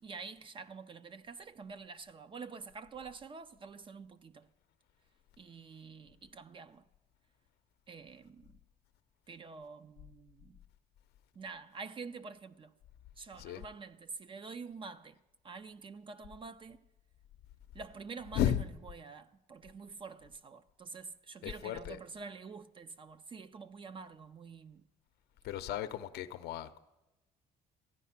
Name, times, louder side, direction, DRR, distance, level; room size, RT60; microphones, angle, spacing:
voice 1, 0.0-4.5 5.4-6.8 7.9-8.6 9.3-10.6 11.3-12.7 13.2-15.2 15.4-16.8 17.7-24.8 25.7-25.8, right 4 dB, 30° right, 0.5 m, -47 dB
voice 2, 21.4-22.0 25.4-26.8, left 11 dB, 75° left, 0.6 m, -34 dB
14.5 x 9.3 x 5.8 m
cardioid pair, 110°, 17 cm